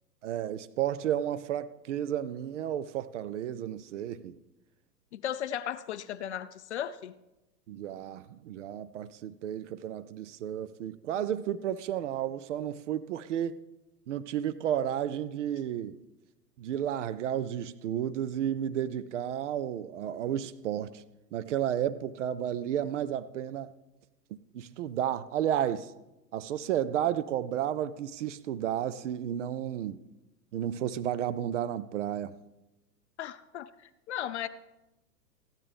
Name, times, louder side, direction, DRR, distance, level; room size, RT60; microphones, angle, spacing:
voice 1, 0.2-4.4 7.7-13.6 14.1-16.0 16.6-21.0 21.3-23.7 24.5-25.9 26.3-30.0 30.5-32.3, right 10 dB, 50° right, 0.5 m, -32 dB
voice 2, 5.1-7.1 33.2-34.5, left 10 dB, 45° left, 0.4 m, -36 dB
15.5 x 12.0 x 3.5 m
hypercardioid pair, 110°, 50 cm